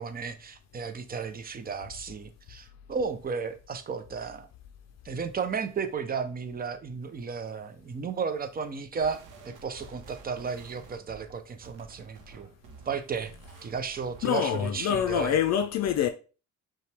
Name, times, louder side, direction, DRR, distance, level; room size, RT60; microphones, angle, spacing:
voice 1, 0.0-4.5 5.0-12.5 12.9-13.3 13.6-15.4, right 5 dB, 30° right, 0.6 m, -34 dB
sound 1, 9.0-14.4, right 4 dB, 90° right, 0.8 m, -51 dB
voice 2, 14.2-16.1, left 9 dB, 60° left, 0.5 m, -25 dB
5.5 x 2.3 x 3.3 m
cardioid pair, 90°, 30 cm